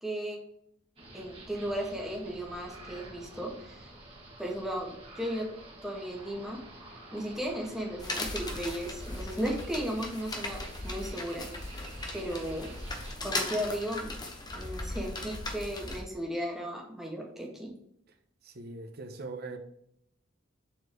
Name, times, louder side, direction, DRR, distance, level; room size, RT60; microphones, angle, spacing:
voice 1, 0.0-0.4 1.1-3.8 4.4-5.4 5.8-6.6 7.1-11.5 12.1-12.7 13.2-14.1 14.5-17.7, equal, ahead, 1.7 m, -35 dB
sound 1, 1.0-13.1, right 2 dB, 25° right, 2.2 m, -49 dB
sound 2, 8.0-16.0, left 2 dB, 20° left, 1.1 m, -38 dB
voice 2, 18.4-19.6, right 3 dB, 50° right, 1.1 m, -41 dB
7.6 x 4.5 x 4.6 m
head